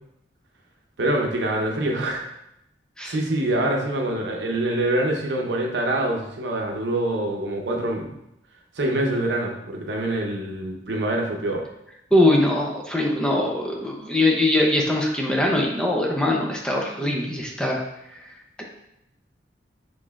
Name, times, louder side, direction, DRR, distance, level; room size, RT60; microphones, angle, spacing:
voice 1, 1.0-2.2 3.1-8.1 8.8-11.7, right 1 dB, 90° right, 2 dB, 0.7 m, -25 dB
voice 2, 12.1-17.8 18.1-18.3 18.6-18.7, left 1 dB, 5° left, -1 dB, 0.6 m, -22 dB
6.2 x 3.1 x 2.4 m, 0.81 s
head